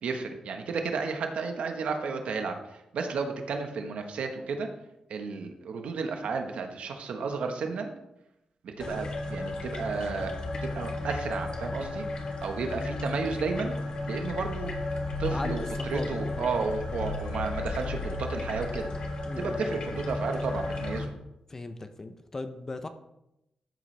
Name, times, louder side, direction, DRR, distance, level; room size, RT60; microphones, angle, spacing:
voice 1, 0.0-4.7 5.1-7.9 8.6-12.0 12.4-13.7 14.1-14.7 15.2-15.6 15.9-18.9 19.4-21.1, right 4 dB, 85° right, 4 dB, 1.3 m, -32 dB
sound 1, 8.8-21.1, left 2 dB, 45° left, 1.6 m, -34 dB
voice 2, 15.3-16.5 19.2-20.0 21.5-22.9, left 2 dB, 25° left, 8 dB, 0.6 m, -38 dB
13.0 x 7.7 x 3.3 m, 0.86 s
wide cardioid pair, 170°, 2 cm